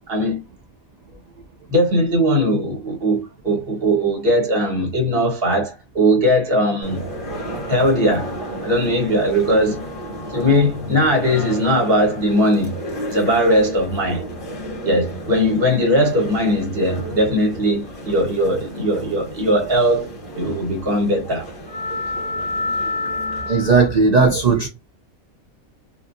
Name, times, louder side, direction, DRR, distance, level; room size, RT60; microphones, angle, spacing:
voice 1, 0.1-0.4 1.7-7.0 7.7-8.3 8.6-9.8 10.3-12.7 13.1-14.2 14.8-20.1 20.4-21.5, equal, 45° right, 1.3 m, -19 dB
sound 1, 6.8-24.0, left 1 dB, 40° left, 1.1 m, -31 dB
voice 2, 23.5-24.7, right 4 dB, 80° right, 0.3 m, -16 dB
2.8 x 2.5 x 2.4 m
omnidirectional pair, 1.4 m